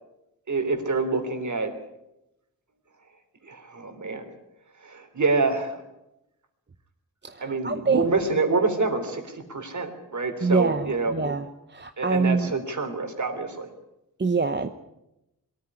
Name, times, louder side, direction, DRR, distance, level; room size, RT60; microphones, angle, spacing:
voice 1, 0.5-1.7 3.4-4.3 4.8-5.8 7.4-11.1 12.0-13.7, right 3 dB, 50° right, 6 dB, 3.5 m, -27 dB
voice 2, 7.2-8.1 10.4-12.5 14.2-14.7, right 4 dB, 30° right, 8 dB, 0.9 m, -25 dB
22.5 x 14.0 x 10.0 m, 0.89 s
wide cardioid pair, 140°, 37 cm